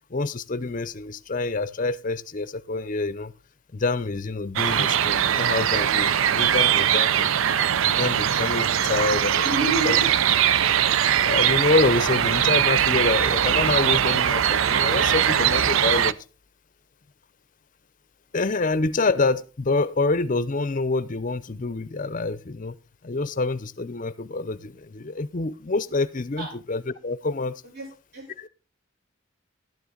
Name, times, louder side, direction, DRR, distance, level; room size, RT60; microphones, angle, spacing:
voice 1, 0.1-3.3 3.7-7.3 7.8-9.5 9.8-10.0 10.6-10.7 11.2-16.2 18.3-22.7 23.0-27.6 28.4-28.5, left 3 dB, 40° left, 0.6 m, -26 dB
sound 1, 4.6-16.1, right 9 dB, 80° right, 0.5 m, -21 dB
voice 2, 9.2-10.1 26.4-26.5 27.6-27.9 28.1-28.2, right 1 dB, 50° right, 6.9 m, -30 dB
12.0 x 9.9 x 3.8 m
head